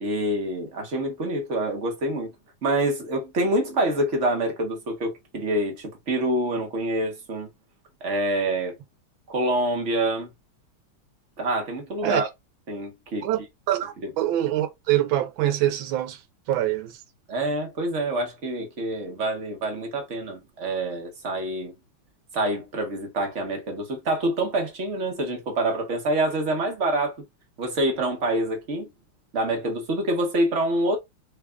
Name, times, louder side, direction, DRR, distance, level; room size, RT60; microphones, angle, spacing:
voice 1, 0.0-2.3 2.6-7.5 8.0-8.8 9.3-10.3 11.4-12.3 12.7-13.3 14.0-14.1 17.3-21.7 22.3-27.2 27.6-28.9 29.3-31.0, right 1 dB, 45° right, 1.1 m, -26 dB
voice 2, 13.7-16.2 16.5-17.0, right 13 dB, 75° right, 1.5 m, -24 dB
3.4 x 2.4 x 3.4 m
omnidirectional pair, 2.2 m